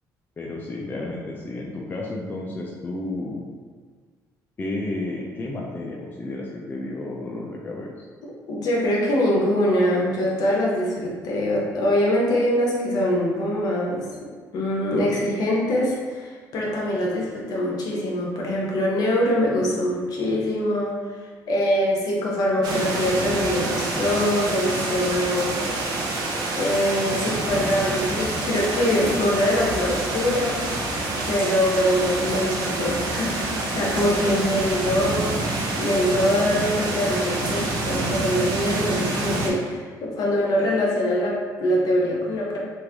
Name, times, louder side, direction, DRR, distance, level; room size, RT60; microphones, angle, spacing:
voice 1, 0.4-3.4 4.6-8.1, left 2 dB, 25° left, -2 dB, 0.4 m, -32 dB
voice 2, 8.2-14.0 14.5-21.2 21.5-25.7 26.6-30.7 31.3-42.6, left 1 dB, 60° left, -3 dB, 0.9 m, -23 dB
sound 1, 22.6-39.5, right 2 dB, 70° right, 0.7 m, -27 dB
3.2 x 2.5 x 3.5 m, 1.5 s
cardioid pair, 100°, 7 cm